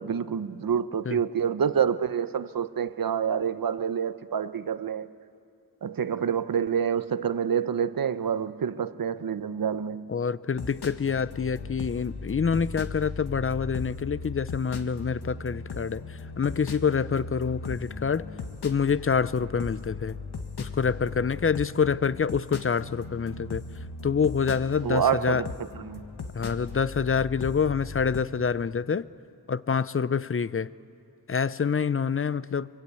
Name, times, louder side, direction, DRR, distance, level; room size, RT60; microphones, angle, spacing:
voice 1, 0.0-5.1 5.8-10.1 24.8-26.0, right 7 dB, 65° right, 0.9 m, -27 dB
voice 2, 10.1-18.3 18.6-20.2 20.6-23.6 24.0-25.4 26.3-29.1 29.5-30.7 31.3-32.7, left 6 dB, 35° left, 0.6 m, -26 dB
sound 1, 10.5-28.2, left 3 dB, 90° left, 1.4 m, -38 dB
27.5 x 24.0 x 8.4 m
wide cardioid pair, 65°, 37 cm